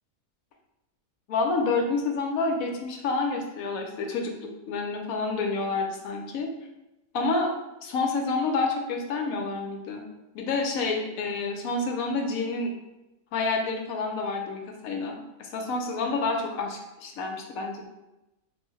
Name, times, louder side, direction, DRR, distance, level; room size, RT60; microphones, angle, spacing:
voice 1, 1.3-6.5 7.1-7.5 7.8-10.0 10.3-12.7 13.3-17.9, left 3 dB, 70° left, 2 dB, 0.9 m, -28 dB
3.4 x 2.6 x 3.0 m, 0.96 s
omnidirectional pair, 1.7 m